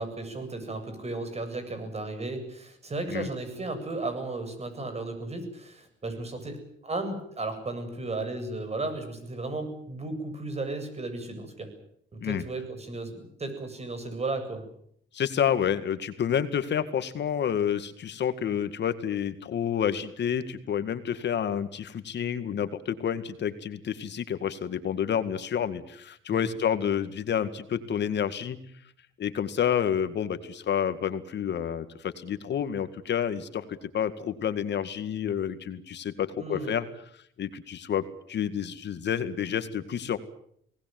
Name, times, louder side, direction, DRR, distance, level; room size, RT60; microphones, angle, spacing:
voice 1, 0.0-11.7 12.1-14.7 26.4-26.5 36.4-36.8, right 2 dB, 30° right, 9 dB, 8.0 m, -34 dB
voice 2, 15.1-28.6 29.2-36.9 37.4-40.2, left 8 dB, 60° left, 10 dB, 2.0 m, -29 dB
24.5 x 19.0 x 9.3 m, 0.69 s
cardioid pair, 90°, 20 cm